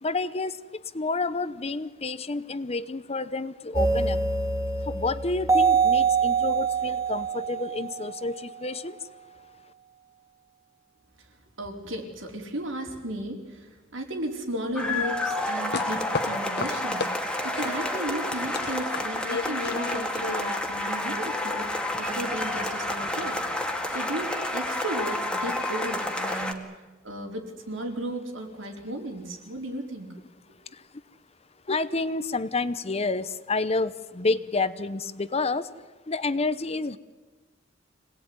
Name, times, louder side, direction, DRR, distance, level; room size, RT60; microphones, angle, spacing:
voice 1, 0.0-0.6 0.9-4.2 4.8-9.1 30.7-30.8 31.7-35.7 36.1-37.0, left 3 dB, 30° left, 15 dB, 0.9 m, -29 dB
sound 1, 3.7-8.4, right 5 dB, 15° right, 2.0 m, -25 dB
voice 2, 11.6-26.7 27.0-30.1, right 1 dB, 85° right, 2 dB, 4.5 m, -35 dB
sound 2, 14.8-26.5, left 1 dB, 5° left, 2.2 m, -30 dB
sound 3, 15.4-17.1 17.6-20.6, left 4 dB, 60° left, 1.2 m, -34 dB
26.0 x 19.0 x 9.7 m, 1.3 s
head